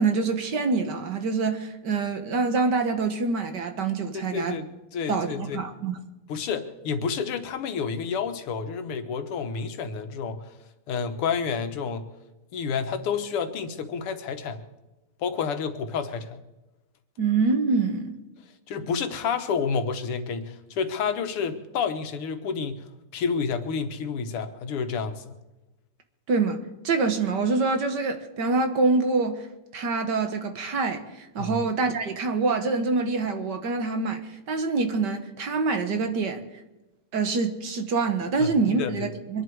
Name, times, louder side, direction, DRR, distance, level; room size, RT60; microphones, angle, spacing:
voice 1, 0.0-4.6 5.1-6.0 17.2-18.2 26.3-29.5 29.7-36.4 37.1-39.4, right 4 dB, 55° right, 1.8 m, -25 dB
voice 2, 4.1-5.6 6.3-10.5 10.9-12.1 12.5-14.6 15.2-16.4 18.7-22.8 23.1-25.3 31.4-31.6 38.4-39.1, left 6 dB, 90° left, 2.1 m, -29 dB
24.0 x 11.0 x 4.7 m
omnidirectional pair, 2.4 m